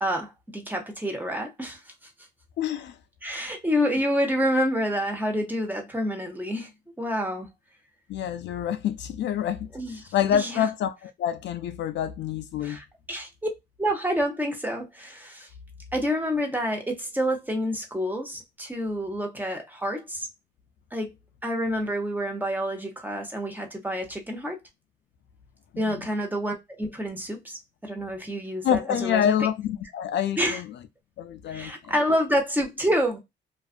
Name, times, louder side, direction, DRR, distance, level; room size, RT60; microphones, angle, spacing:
voice 1, 0.0-1.9 3.2-6.7 7.0-7.5 9.7-10.0 10.3-10.7 12.6-13.5 13.8-15.5 15.9-20.3 20.9-21.2 21.4-24.6 25.8-29.5 30.4-30.6 31.5-33.2, equal, 10° right, 0.8 m, -28 dB
voice 2, 2.6-3.0 8.1-9.7 10.1-12.8 25.7-26.1 28.6-30.7 31.2-31.9, left 9 dB, 65° left, 0.4 m, -27 dB
2.4 x 2.4 x 2.4 m
cardioid pair, 90°, 20 cm